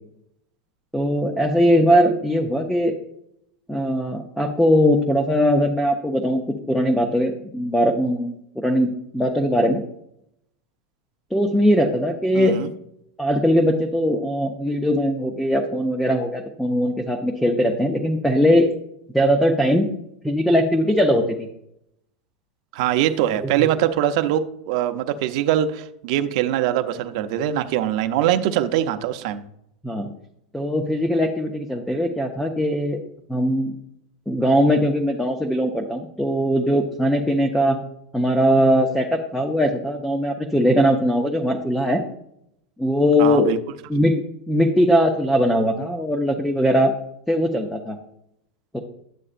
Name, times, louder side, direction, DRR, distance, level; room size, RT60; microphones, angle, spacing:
voice 1, 0.9-2.9 3.7-9.8 11.3-12.5 13.2-18.7 19.1-19.9 20.2-21.5 23.4-23.7 29.8-30.1 30.5-33.0 33.3-33.8 34.3-37.8 38.1-42.0 42.8-43.5 43.9-46.9 47.3-48.0 48.7-48.8, equal, ahead, 3 dB, 0.5 m, -20 dB
voice 2, 12.3-12.7 22.7-29.4 43.2-43.6, right 11 dB, 50° right, 8 dB, 0.7 m, -22 dB
11.0 x 7.6 x 2.5 m, 0.76 s
supercardioid pair, 175°, 4 cm